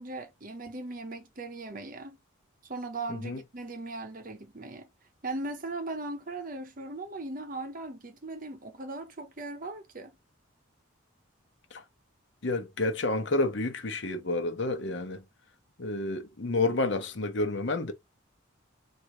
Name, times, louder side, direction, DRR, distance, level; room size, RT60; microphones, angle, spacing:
voice 1, 0.0-2.2 2.6-4.9 5.2-10.2, right 2 dB, 40° right, 0.7 m, -38 dB
voice 2, 12.4-15.2 15.8-17.9, left 2 dB, 60° left, 0.8 m, -30 dB
4.2 x 2.5 x 4.7 m
head